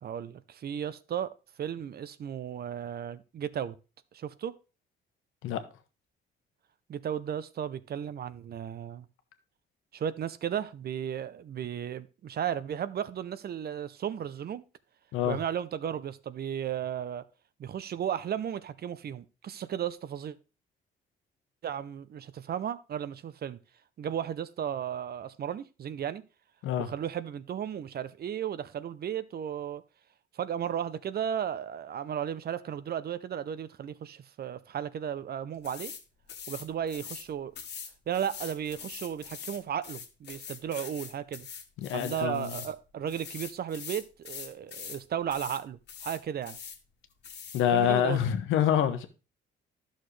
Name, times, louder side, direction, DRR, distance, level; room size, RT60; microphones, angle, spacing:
voice 1, 0.0-1.3 1.6-3.7 4.1-4.5 6.9-9.1 9.9-14.6 15.2-17.2 17.6-20.4 21.6-23.6 24.0-26.2 26.8-29.8 30.3-35.9 36.5-37.5 38.1-41.5 41.9-46.6 47.7-48.2, right 9 dB, 55° right, 0.7 m, -34 dB
sound 1, 35.6-36.0 36.3-37.3 37.6-42.7 43.1-45.0 45.3-45.6 45.9-46.8 47.2-47.6, left 7 dB, 60° left, 1.6 m, -43 dB
voice 2, 41.8-42.5 47.5-49.1, left 10 dB, 85° left, 1.0 m, -26 dB
11.0 x 6.5 x 3.2 m
cardioid pair, 90°, 20 cm